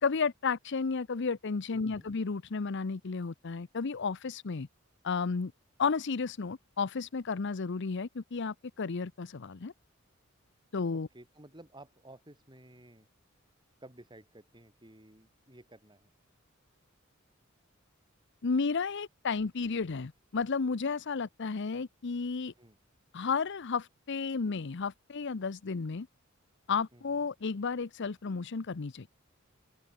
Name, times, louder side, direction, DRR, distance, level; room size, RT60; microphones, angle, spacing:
voice 1, 0.0-4.7 5.0-5.5 5.8-9.7 10.7-11.1 18.4-22.5 23.1-26.1 26.7-29.1, left 5 dB, 60° left, 0.7 m, -32 dB
voice 2, 1.7-2.1 10.9-13.1 13.8-16.1 22.6-22.8 26.9-27.3, right 1 dB, 20° right, 6.7 m, -54 dB
head